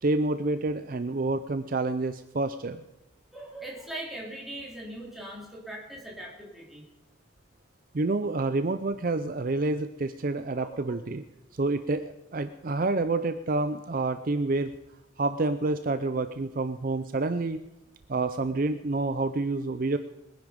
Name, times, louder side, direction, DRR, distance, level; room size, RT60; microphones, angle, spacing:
voice 1, 0.0-2.8 7.9-11.2 11.5-14.7 15.2-17.6 18.1-20.0, right 2 dB, 40° right, 10 dB, 0.5 m, -28 dB
voice 2, 3.3-6.8 10.6-11.0, right 1 dB, ahead, -3 dB, 3.7 m, -40 dB
21.5 x 10.0 x 5.3 m, 0.96 s
head